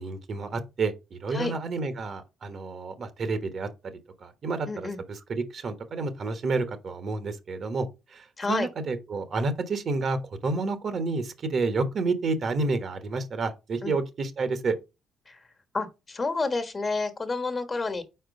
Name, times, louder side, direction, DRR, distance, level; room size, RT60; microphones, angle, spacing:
voice 1, 0.0-3.7 4.2-14.8, right 3 dB, 55° right, 1.1 m, -30 dB
voice 2, 4.6-5.0 8.4-8.7 13.8-13.9 15.3-15.4 15.7-18.0, left 3 dB, 35° left, 1.3 m, -29 dB
4.4 x 4.4 x 5.2 m
supercardioid pair, 65°, 0 cm